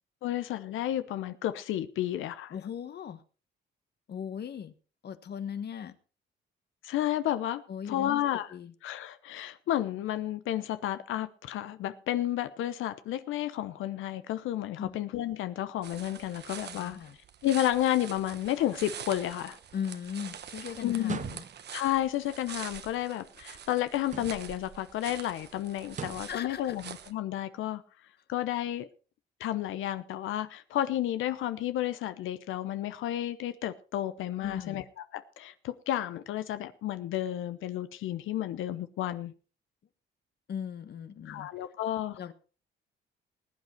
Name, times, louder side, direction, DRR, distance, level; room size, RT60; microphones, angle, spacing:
voice 1, 0.2-2.5 6.8-7.6 7.9-8.5 8.8-17.0 17.4-19.6 20.8-21.2 21.7-27.8 28.3-28.9 29.4-34.8 35.1-39.3 41.3-42.2, left 12 dB, 85° left, 0.9 m, -31 dB
voice 2, 2.5-3.2 4.1-4.7 5.0-6.0 7.7-8.2 8.5-8.7 14.8-15.0 16.7-17.2 19.7-21.4 26.3-26.8 34.4-34.9 40.5-41.5 42.2-42.3, left 8 dB, 55° left, 1.3 m, -38 dB
sound 1, 15.8-27.1, right 8 dB, 55° right, 1.2 m, -46 dB
sound 2, 21.0-21.8 24.0-24.7 25.9-26.4, right 7 dB, 40° right, 0.7 m, -40 dB
20.0 x 8.4 x 4.5 m
cardioid pair, 90°, 20 cm